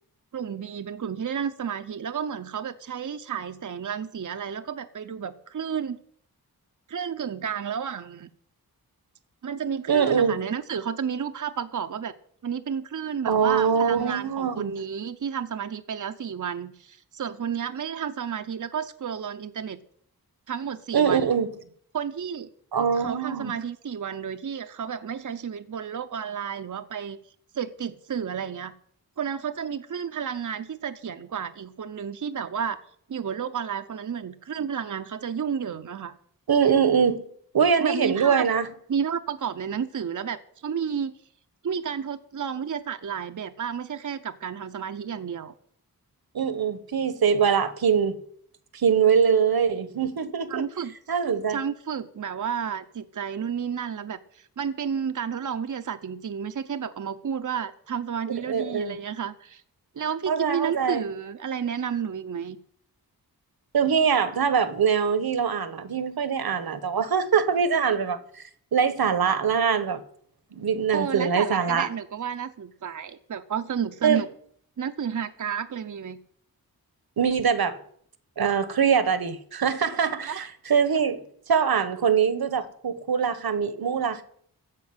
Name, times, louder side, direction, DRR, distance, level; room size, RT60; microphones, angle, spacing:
voice 1, 0.3-6.0 6.9-8.3 9.4-12.1 12.4-19.8 20.5-21.3 21.9-22.5 22.9-27.2 27.5-28.7 29.2-32.8 33.1-36.1 37.8-38.5 38.9-41.1 41.6-45.5 50.5-50.9 51.5-59.6 59.9-62.6 70.9-74.3 74.8-76.2 80.2-80.5, right 7 dB, 55° right, 0.8 m, -31 dB
voice 2, 9.9-10.3 13.2-14.7 20.9-21.5 22.7-23.5 36.5-37.2 37.5-38.7 46.3-48.2 48.7-50.6 51.1-51.6 58.4-59.0 60.3-61.1 63.7-70.0 70.5-71.9 74.0-74.2 77.2-77.8 78.4-81.2 81.5-84.2, right 6 dB, 75° right, 1.2 m, -23 dB
15.0 x 5.3 x 9.6 m
wide cardioid pair, 100°, 37 cm